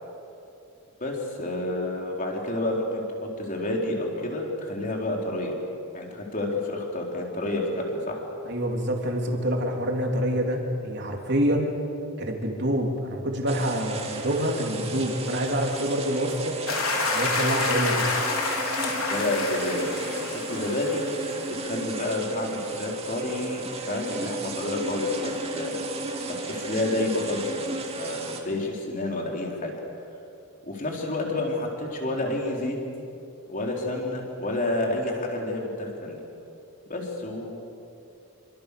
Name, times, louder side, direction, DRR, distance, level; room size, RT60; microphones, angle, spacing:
voice 1, 1.0-5.6 5.9-8.2 19.0-20.1 20.5-21.0 21.5-23.6 23.9-25.8 26.3-27.5 27.9-29.7 30.7-32.8 33.5-36.2 36.9-37.7, left 2 dB, 35° left, -1 dB, 4.3 m, -29 dB
voice 2, 8.5-11.7 12.2-16.6 17.1-18.1, equal, 50° right, 1 dB, 3.5 m, -26 dB
sound 1, 13.5-28.4, right 3 dB, 25° right, 2.4 m, -34 dB
sound 2, 16.7-21.4, left 3 dB, 75° left, 3.9 m, -28 dB
27.5 x 25.5 x 7.0 m, 2.7 s
head